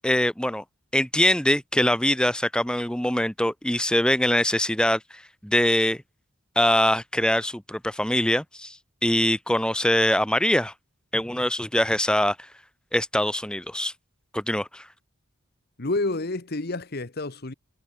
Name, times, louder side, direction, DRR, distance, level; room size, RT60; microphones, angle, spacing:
voice 1, 0.0-0.6 0.9-6.0 6.6-8.8 9.0-10.7 11.1-12.4 12.9-13.9 14.3-14.8, left 1 dB, 5° left, 1.1 m, -23 dB
voice 2, 15.8-17.5, left 2 dB, 45° left, 1.2 m, -29 dB
head